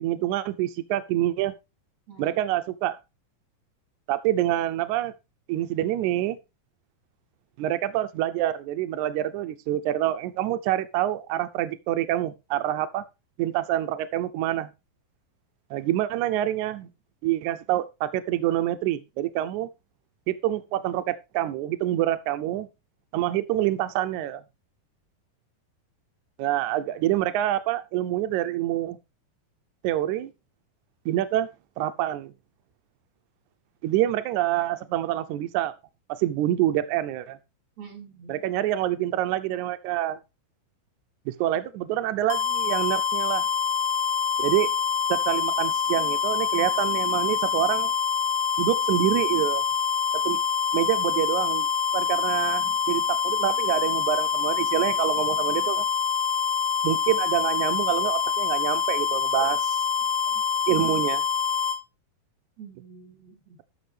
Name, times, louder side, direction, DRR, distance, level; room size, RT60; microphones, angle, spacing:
voice 1, 0.0-1.5 2.2-3.0 4.1-5.1 5.5-6.4 7.6-13.0 13.4-14.7 15.7-16.9 17.2-19.7 20.3-22.7 23.1-24.4 26.4-29.0 29.8-30.3 31.0-31.5 31.8-32.3 33.8-35.7 36.2-37.4 38.3-40.2 41.3-43.5 44.4-44.7 45.1-47.9 48.6-49.6 50.2-50.4 50.7-51.7 51.9-55.8 56.8-59.8 60.7-61.2, right 13 dB, 80° right, 1.7 m, -26 dB
voice 2, 2.1-2.4 37.8-38.4 62.6-63.6, right 6 dB, 50° right, 4.3 m, -46 dB
sound 1, 42.3-61.8, left 6 dB, 70° left, 2.0 m, -25 dB
14.0 x 6.2 x 3.3 m
omnidirectional pair, 4.2 m